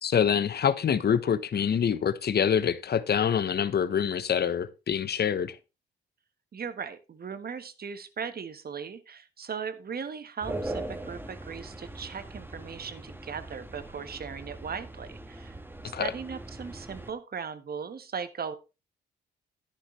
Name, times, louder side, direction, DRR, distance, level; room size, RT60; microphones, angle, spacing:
voice 1, 0.0-5.6 15.9-16.1, left 8 dB, 50° left, 1.0 m, -26 dB
voice 2, 6.5-15.6 15.8-18.5, right 6 dB, 45° right, 1.5 m, -38 dB
sound 1, 10.4-17.1, right 2 dB, 10° right, 1.6 m, -40 dB
10.0 x 10.0 x 3.2 m
supercardioid pair, 60°, 21 cm